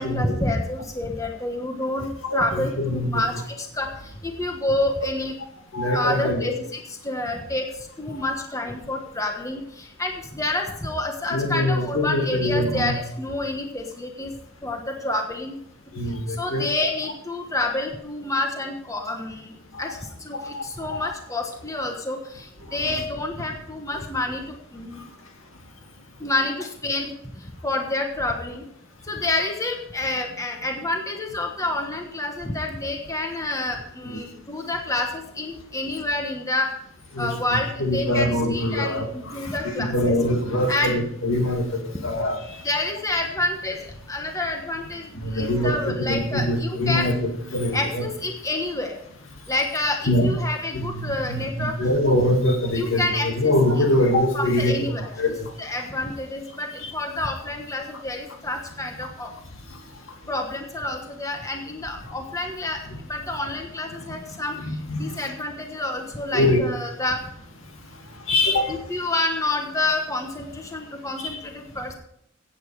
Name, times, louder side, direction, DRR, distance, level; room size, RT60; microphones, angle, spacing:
voice 1, 0.0-3.9 4.2-5.3 5.9-7.6 8.0-14.3 14.6-15.5 16.4-19.5 19.8-25.1 26.2-27.1 27.6-28.6 29.1-36.7 37.2-40.2 40.7-41.0 42.6-43.8 44.1-47.1 47.7-48.9 49.5-51.8 52.7-53.5 54.3-59.3 60.3-62.8 63.1-64.5 65.0-67.2 68.7-71.9, left 2 dB, 15° left, 3 dB, 1.3 m, -28 dB
voice 2, 2.2-3.2 5.7-6.5 11.3-12.9 15.9-16.7 19.7-19.8 20.3-20.6 20.9-21.0 34.1-34.2 37.1-37.3 37.8-42.6 45.2-48.0 50.1-50.3 50.7-54.7 55.2-55.5 56.8-56.9 62.9-63.0 64.6-65.0 66.3-66.6 68.3-68.7 71.2-71.4, left 1 dB, 70° left, 3 dB, 2.3 m, -23 dB
16.0 x 8.5 x 4.8 m, 0.73 s
head